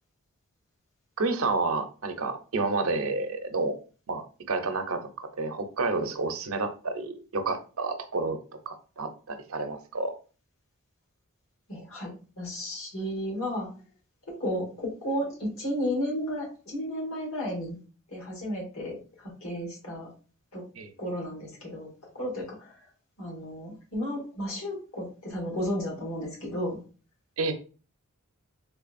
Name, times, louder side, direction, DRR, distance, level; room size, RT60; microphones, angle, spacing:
voice 1, 1.2-3.8 4.1-8.4 8.7-10.1 20.8-20.9 27.4-27.5, right 3 dB, 75° right, 7 dB, 0.6 m, -30 dB
voice 2, 11.7-13.7 14.3-17.7 18.1-20.1 20.5-20.6 21.0-21.9 22.1-22.9 23.2-26.8, equal, 75° left, -3 dB, 2.0 m, -33 dB
3.6 x 3.3 x 2.4 m, 0.36 s
head